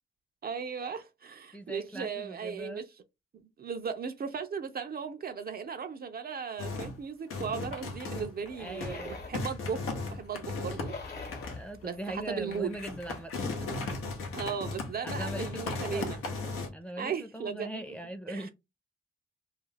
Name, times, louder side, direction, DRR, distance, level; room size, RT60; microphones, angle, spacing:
voice 1, 0.4-2.8 3.6-9.8 10.1-10.9 11.8-12.8 14.3-16.2 17.0-17.8 18.3-18.5, right 6 dB, 45° right, 0.4 m, -36 dB
voice 2, 1.5-2.8 8.6-9.2 11.6-13.9 15.0-18.5, right 1 dB, 5° left, 0.5 m, -41 dB
sound 1, 6.6-7.0 7.3-8.5 8.8-9.0 9.3-11.7 12.0-12.1 12.5-16.7, left 3 dB, 90° left, 0.7 m, -36 dB
sound 2, 8.4-13.3, left 4 dB, 50° left, 1.0 m, -46 dB
2.4 x 2.3 x 3.2 m
cardioid pair, 70°, 21 cm